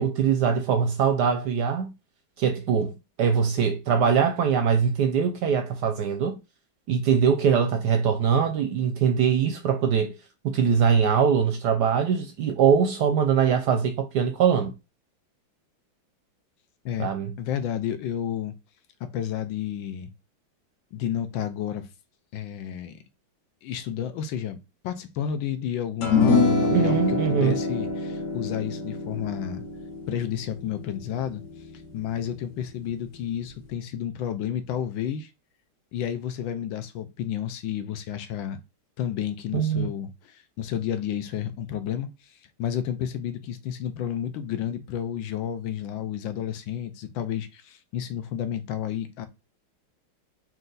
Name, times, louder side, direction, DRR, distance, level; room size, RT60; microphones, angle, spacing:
voice 1, 0.0-1.9 2.4-2.9 3.2-6.4 6.9-10.1 10.4-14.7 17.0-17.3 26.7-27.5 39.5-39.9, right 7 dB, 70° right, 1.0 m, -22 dB
voice 2, 17.4-18.5 19.0-20.1 20.9-21.9 22.3-22.9 23.6-24.6 24.8-29.6 30.1-31.4 31.9-35.3 35.9-38.6 39.0-49.3, left 9 dB, 75° left, 1.4 m, -31 dB
sound 1, 26.0-32.5, left 3 dB, 55° left, 0.9 m, -26 dB
4.5 x 2.7 x 3.9 m
omnidirectional pair, 2.2 m